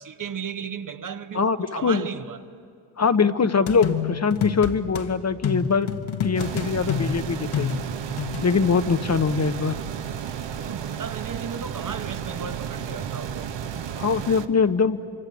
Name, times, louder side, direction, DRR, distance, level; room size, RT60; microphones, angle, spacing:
voice 1, 0.0-2.4 10.6-13.8, right 7 dB, 40° right, 1.2 m, -35 dB
voice 2, 1.3-2.1 3.0-5.9 6.2-7.8 8.4-9.8 14.0-15.0, left 5 dB, 35° left, 1.0 m, -22 dB
sound 1, 3.7-5.1 5.4-8.6, left 8 dB, 70° left, 1.7 m, -28 dB
sound 2, 6.4-14.5, right 8 dB, 60° right, 1.3 m, -33 dB
25.0 x 24.0 x 8.5 m
supercardioid pair, 65°, 49 cm